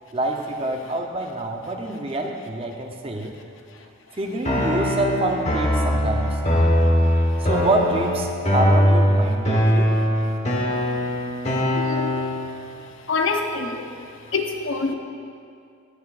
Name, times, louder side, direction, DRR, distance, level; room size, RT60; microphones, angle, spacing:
voice 1, 0.1-3.3 4.2-6.4 7.4-9.9, right 2 dB, 25° right, 2 dB, 0.6 m, -26 dB
sound 1, 4.4-12.4, equal, 30° left, 1.1 m, -21 dB
voice 2, 11.7-12.3 13.1-13.9 14.3-14.9, left 4 dB, 65° left, 4 dB, 0.7 m, -26 dB
17.5 x 6.5 x 2.4 m, 2.4 s
head